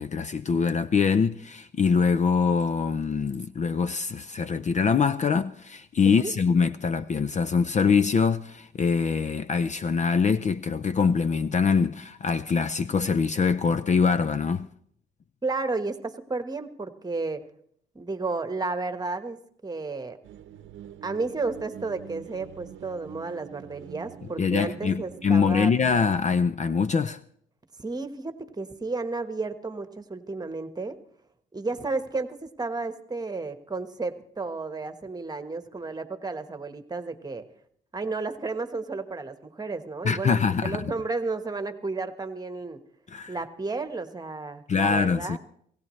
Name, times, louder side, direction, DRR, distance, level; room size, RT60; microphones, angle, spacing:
voice 1, 0.0-14.7 24.4-27.2 40.0-40.9 43.1-43.3 44.7-45.4, left 5 dB, 35° left, 0.5 m, -24 dB
voice 2, 15.4-17.4 17.9-19.4 19.6-20.2 21.0-25.7 27.8-31.0 31.5-37.4 37.9-42.8 43.3-45.4, right 3 dB, 20° right, 1.4 m, -32 dB
sound 1, 20.2-26.5, right 10 dB, 75° right, 0.8 m, -45 dB
27.0 x 16.5 x 3.2 m
cardioid pair, 90°, 20 cm